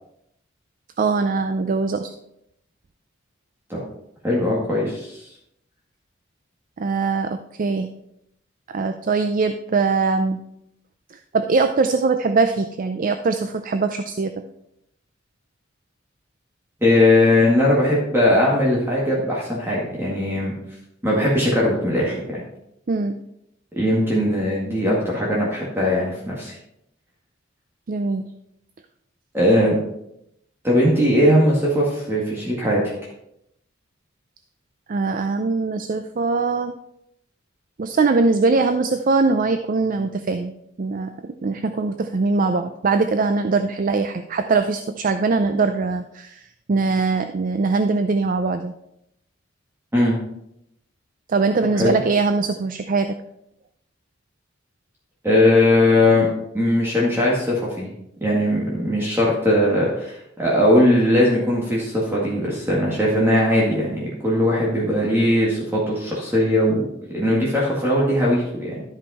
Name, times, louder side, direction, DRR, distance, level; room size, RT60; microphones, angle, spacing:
voice 1, 1.0-2.1 6.8-7.9 8.7-10.4 11.3-14.3 22.9-23.2 27.9-28.2 34.9-36.8 37.8-40.5 40.8-46.4 46.7-48.7 51.3-53.2, right 4 dB, 45° right, 8 dB, 0.4 m, -21 dB
voice 2, 4.2-5.2 16.8-20.5 21.0-22.4 23.7-26.5 29.3-29.8 30.6-32.8 49.9-50.2 51.7-51.9 55.2-56.3 56.5-57.9 58.2-68.7, left 1 dB, 10° right, -5 dB, 1.8 m, -19 dB
12.0 x 5.4 x 4.2 m, 0.79 s
head